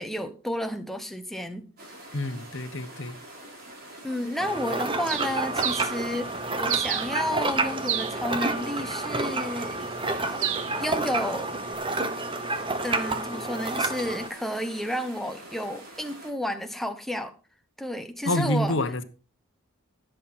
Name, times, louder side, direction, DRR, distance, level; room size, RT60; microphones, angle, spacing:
voice 1, 0.0-1.7 4.0-9.8 10.3-10.5 10.8-11.5 12.8-17.3 17.8-18.8, left 1 dB, ahead, 1.0 m, -31 dB
sound 1, 1.8-16.3, right 1 dB, 45° right, 4.3 m, -45 dB
voice 2, 2.1-3.2 18.2-19.0, left 1 dB, 60° left, 1.1 m, -27 dB
sound 2, 4.4-14.3, right 2 dB, 25° right, 1.0 m, -29 dB
Bird, 5.1-11.7, right 10 dB, 65° right, 1.0 m, -35 dB
15.0 x 7.8 x 4.2 m
head